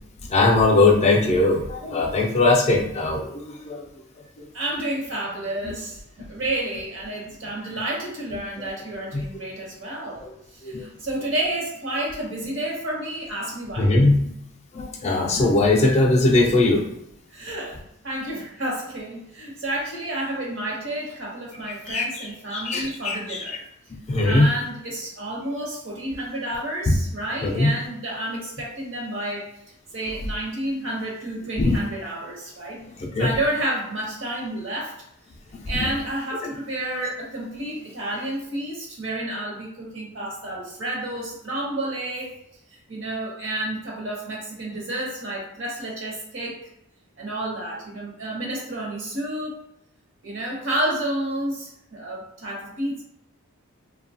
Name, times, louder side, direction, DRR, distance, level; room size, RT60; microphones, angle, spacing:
voice 1, 0.3-3.8 9.1-9.2 10.7-10.8 13.8-14.3 14.7-16.8 21.9-22.0 22.5-23.4 24.1-24.5 26.9-27.0 27.4-27.7 31.6-31.8 33.0-33.3, left 2 dB, 30° left, 0 dB, 0.3 m, -20 dB
voice 2, 4.5-10.2 10.5-13.9 17.3-23.6 24.2-29.5 29.9-32.8 33.2-34.9 35.7-42.4 42.9-46.6 47.2-49.6 50.2-53.0, right 1 dB, 60° right, -2 dB, 0.9 m, -30 dB
2.7 x 2.2 x 2.7 m, 0.79 s
head